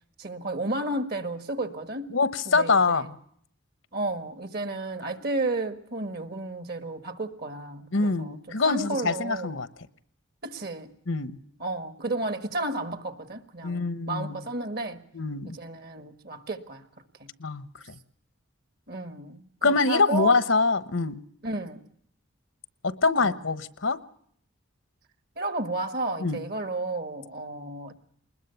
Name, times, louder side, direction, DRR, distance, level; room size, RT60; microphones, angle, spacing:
voice 1, 0.2-2.1 2.5-3.1 3.9-8.4 8.6-9.5 10.4-10.9 11.6-15.0 15.5-16.9 17.2-17.3 18.9-20.4 21.4-21.8 23.2-23.4 25.4-27.9, right 2 dB, 50° right, 1.6 m, -32 dB
voice 2, 2.1-3.2 7.9-9.7 11.1-11.4 13.6-14.4 15.1-15.6 17.4-17.9 19.6-21.2 22.8-24.0 26.2-26.4, left 3 dB, 70° left, 1.0 m, -25 dB
21.0 x 20.5 x 7.0 m
head